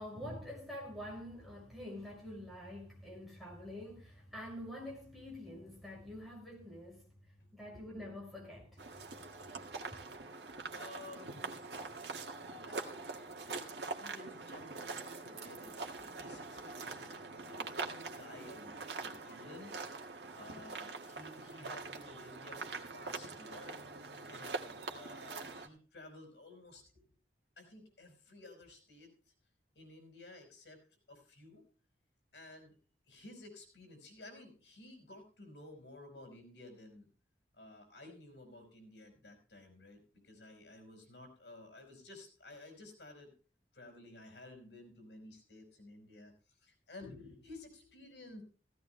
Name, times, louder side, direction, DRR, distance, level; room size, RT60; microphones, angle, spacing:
voice 1, 0.0-7.0 7.5-8.8, left 1 dB, ahead, 6.1 m, -46 dB
sound 1, 8.8-25.7, right 3 dB, 75° right, 1.9 m, -44 dB
voice 2, 10.7-11.6 12.7-17.7 18.0-19.7 20.3-23.8 24.3-27.0 27.6-29.3 29.7-31.6 32.3-32.7 33.1-37.1 37.5-43.3 43.7-48.4, left 2 dB, 75° left, 5.0 m, -54 dB
17.0 x 16.5 x 2.2 m
head